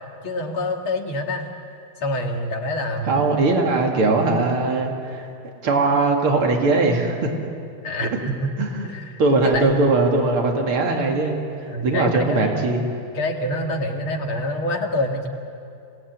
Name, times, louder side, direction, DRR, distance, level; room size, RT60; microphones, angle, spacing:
voice 1, 0.2-1.5 2.0-3.3 7.8-8.5 8.8-9.8 11.7-12.8 13.1-15.3, left 1 dB, 75° left, 1 dB, 3.1 m, -26 dB
voice 2, 3.0-5.3 5.6-7.3 8.6-8.9 9.2-12.9, right 3 dB, 90° right, 2 dB, 3.3 m, -20 dB
28.5 x 18.0 x 9.4 m, 2.5 s
omnidirectional pair, 2.3 m